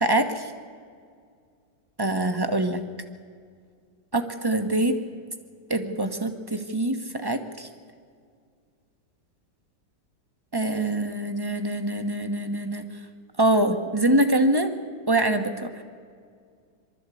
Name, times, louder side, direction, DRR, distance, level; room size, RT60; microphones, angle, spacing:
voice 1, 0.0-0.5 2.0-2.8 4.1-5.0 5.7-7.7 10.5-12.9 13.4-14.7 15.1-15.7, right 1 dB, 15° right, 7 dB, 1.0 m, -24 dB
23.5 x 13.0 x 8.5 m, 2.1 s
omnidirectional pair, 1.9 m